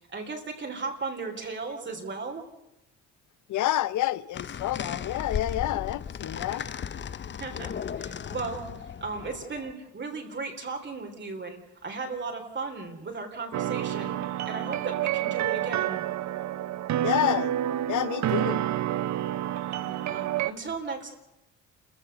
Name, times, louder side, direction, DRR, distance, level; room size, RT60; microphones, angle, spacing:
voice 1, 0.1-2.5 7.4-16.0 19.8-21.1, right 4 dB, 40° right, 3.6 m, -36 dB
voice 2, 3.5-6.7 17.0-17.5 17.9-18.6, left 13 dB, 75° left, 0.8 m, -28 dB
sound 1, 4.3-9.7, left 8 dB, 40° left, 0.7 m, -36 dB
sound 2, 13.5-20.5, right 12 dB, 65° right, 0.8 m, -29 dB
29.0 x 15.0 x 6.8 m
cardioid pair, 90°, 30 cm